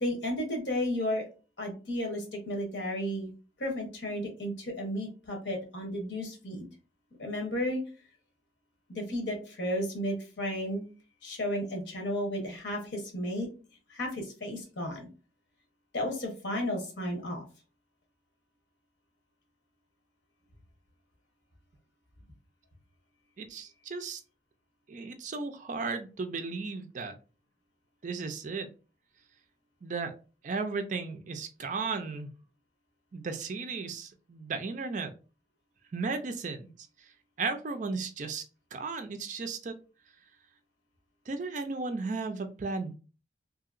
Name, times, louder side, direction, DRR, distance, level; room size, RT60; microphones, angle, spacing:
voice 1, 0.0-1.2 1.6-3.3 3.6-6.6 7.2-7.8 8.9-10.8 11.2-13.5 13.9-15.1 15.9-17.4, left 1 dB, 70° left, 2 dB, 1.0 m, -33 dB
voice 2, 23.4-24.2 24.9-27.2 28.0-28.7 29.8-30.1 30.4-32.3 33.1-35.1 35.9-36.7 37.4-38.4 38.7-39.7 41.3-42.9, right 4 dB, 40° right, 8 dB, 0.4 m, -35 dB
2.8 x 2.7 x 2.4 m, 0.34 s
head